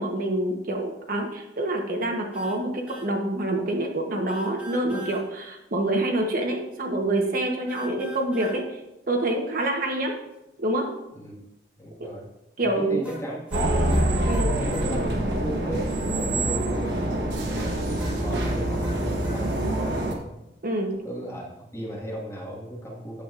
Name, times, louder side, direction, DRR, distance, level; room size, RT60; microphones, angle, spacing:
voice 1, 0.0-8.8 9.1-10.1 10.6-10.9 12.6-13.0 14.2-14.5 20.6-21.0, right 1 dB, 55° right, 2 dB, 0.9 m, -26 dB
sound 1, 2.3-2.6 2.9-3.1 4.3-5.2 7.7-8.6 13.0-14.9 17.5-19.4, equal, 5° right, 1.1 m, -43 dB
voice 2, 11.8-12.3 12.6-13.9 14.4-17.1 17.4-20.3 21.0-21.5 21.7-23.2, equal, 15° left, -3 dB, 1.6 m, -36 dB
sound 2, 13.5-20.1, right 1 dB, 70° right, 1.2 m, -25 dB
8.8 x 7.1 x 2.5 m, 0.93 s
head